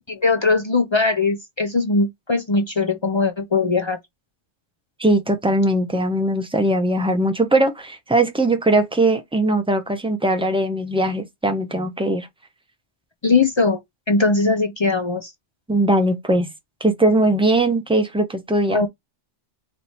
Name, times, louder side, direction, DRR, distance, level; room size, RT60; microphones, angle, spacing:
voice 1, 0.1-4.0 13.2-13.8 14.1-15.3 18.7-18.9, left 3 dB, 50° left, 0.3 m, -20 dB
voice 2, 5.0-12.3 15.7-16.5 16.8-18.8, right 1 dB, 5° right, 0.6 m, -20 dB
3.3 x 2.9 x 4.2 m
omnidirectional pair, 1.2 m